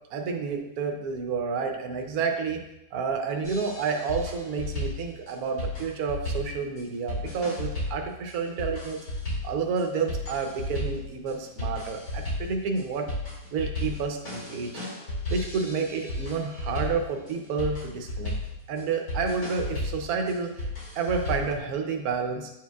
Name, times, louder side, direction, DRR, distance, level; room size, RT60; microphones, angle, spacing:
voice 1, 0.1-2.6 2.9-9.0 9.4-13.1 13.5-14.7 15.3-18.3 18.7-20.7 20.9-22.5, right 5 dB, 80° right, 3 dB, 1.2 m, -30 dB
sound 1, 3.4-21.6, left 1 dB, 85° left, 3.0 m, -34 dB
8.8 x 4.6 x 2.3 m, 0.89 s
omnidirectional pair, 1.6 m